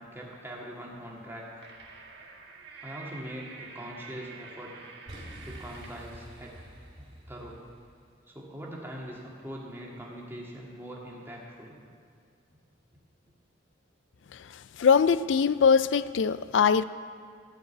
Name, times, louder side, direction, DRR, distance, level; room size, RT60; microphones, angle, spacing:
voice 1, 0.0-1.7 2.8-4.7 5.4-6.6 7.3-7.6 8.3-11.8, equal, 10° right, -3 dB, 2.0 m, -42 dB
sound 1, 1.2-6.1, right 4 dB, 60° right, 1.5 m, -48 dB
Boom, 5.1-8.0, equal, 30° right, 4.0 m, -47 dB
voice 2, 14.8-16.8, left 6 dB, 75° left, 15 dB, 0.4 m, -22 dB
14.5 x 5.2 x 9.4 m, 2.1 s
head